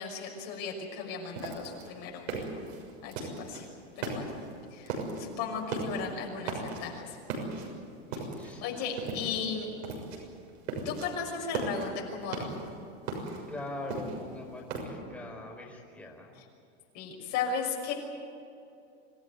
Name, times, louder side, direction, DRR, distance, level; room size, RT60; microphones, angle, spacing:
voice 1, 0.0-2.6 3.0-3.7 4.0-4.3 4.7-7.2 8.6-9.7 10.8-12.5 16.4-16.5 16.9-17.9, left 6 dB, 50° left, 0 dB, 6.1 m, -36 dB
sound 1, 1.4-3.6 4.0-4.5 4.9-5.3 5.6-6.1 6.4-7.0 7.3-8.6 9.0-9.5 9.8-10.2 10.5-11.1 11.4-12.7 13.1-14.8, right 4 dB, 75° right, 6.6 m, -36 dB
voice 2, 8.1-8.7 13.5-16.3, left 2 dB, 5° left, -1 dB, 4.7 m, -42 dB
26.5 x 15.5 x 9.8 m, 2.5 s
supercardioid pair, 140°, 33 cm